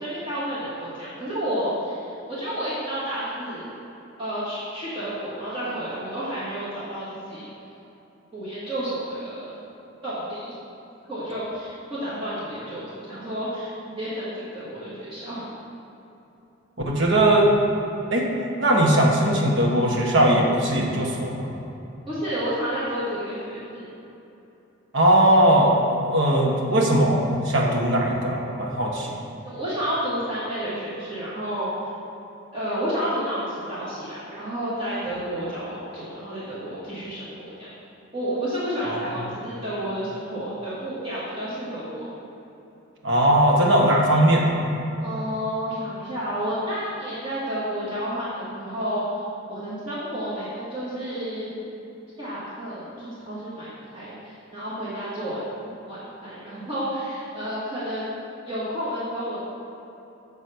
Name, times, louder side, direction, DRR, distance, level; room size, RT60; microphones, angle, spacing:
voice 1, 0.0-3.7 4.2-7.5 8.3-9.5 10.0-10.5 11.1-13.7 14.0-15.5 22.1-23.9 29.4-31.7 32.5-37.7 38.1-42.1 45.0-49.2 49.5-51.6 52.2-53.7 53.9-55.4 55.9-58.2 58.4-59.4, equal, 25° right, -12 dB, 1.6 m, -30 dB
voice 2, 16.8-17.5 18.1-18.3 18.6-21.5 24.9-29.1 38.9-39.1 43.0-44.6, right 1 dB, 70° right, -1 dB, 1.1 m, -19 dB
7.6 x 4.0 x 5.5 m, 2.9 s
head